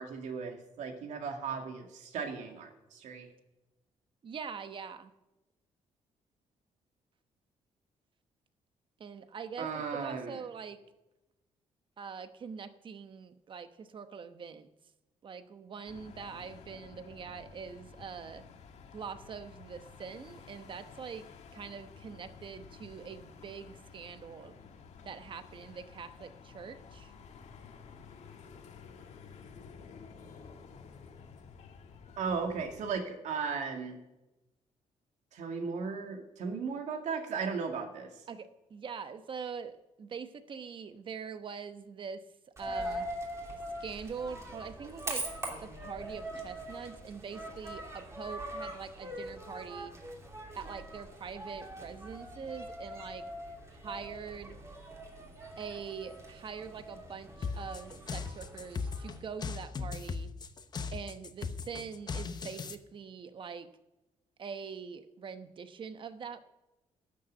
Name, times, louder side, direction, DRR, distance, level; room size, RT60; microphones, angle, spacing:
voice 1, 0.0-3.3 9.6-10.4 32.2-34.0 35.3-38.1, right 5 dB, 80° right, 4 dB, 2.1 m, -36 dB
voice 2, 4.2-5.1 9.0-10.8 12.0-14.7 15.2-18.4 18.9-21.3 21.5-24.5 25.0-27.1 38.3-42.2 42.6-43.1 43.8-45.2 45.6-49.9 50.5-53.2 53.8-54.6 55.6-60.3 60.9-63.7 64.4-66.4, right 6 dB, 45° right, 10 dB, 1.0 m, -43 dB
sound 1, 15.9-32.9, left 5 dB, 70° left, 1.5 m, -52 dB
Coin (dropping), 42.6-59.2, right 1 dB, 25° right, 2.8 m, -42 dB
sound 2, 57.4-62.8, left 5 dB, 35° left, 0.8 m, -38 dB
12.0 x 6.8 x 9.0 m, 1.0 s
cardioid pair, 130°, 12 cm